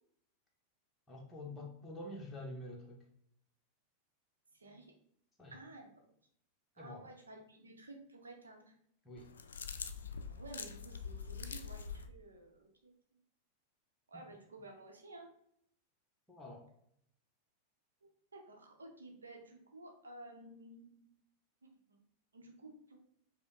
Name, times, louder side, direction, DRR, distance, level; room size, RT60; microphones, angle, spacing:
voice 1, 1.1-3.1 5.4-5.5 6.8-7.1 9.0-9.3 14.1-14.2 16.3-16.7, left 1 dB, 10° left, -2 dB, 0.8 m, -47 dB
voice 2, 4.5-4.9 5.5-5.9 6.8-8.7 10.4-12.9 14.1-15.3 18.0-21.0 21.6-22.0 22.3-23.0, right 2 dB, 75° right, 2 dB, 0.8 m, -53 dB
sound 1, 9.2-12.1, left 6 dB, 70° left, 0.3 m, -44 dB
5.0 x 2.1 x 3.7 m, 0.69 s
figure-of-eight pair, 90°, 0 cm